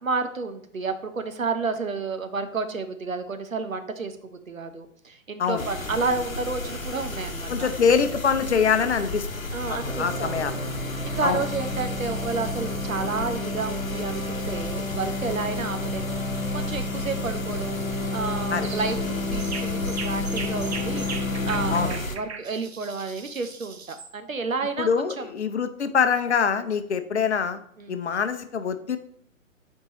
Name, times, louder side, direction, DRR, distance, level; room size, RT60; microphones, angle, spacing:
voice 1, 0.0-7.7 9.5-10.7 11.0-16.2 16.5-17.8 18.1-21.1 21.5-25.3 27.8-28.0, right 4 dB, 75° right, 8 dB, 0.9 m, -31 dB
sound 1, 5.6-22.2, left 2 dB, 80° left, 1.0 m, -33 dB
voice 2, 7.5-9.4 10.0-10.6 11.2-11.4 18.5-18.7 21.7-21.9 24.8-27.6 27.9-29.0, left 6 dB, 55° left, 10 dB, 0.7 m, -24 dB
sound 2, 9.8-21.9, left 2 dB, 10° left, 0.7 m, -31 dB
sound 3, 18.6-19.0 19.4-24.1, right 5 dB, 50° right, 0.9 m, -38 dB
9.6 x 4.6 x 3.0 m, 0.69 s
figure-of-eight pair, 130°, 40 cm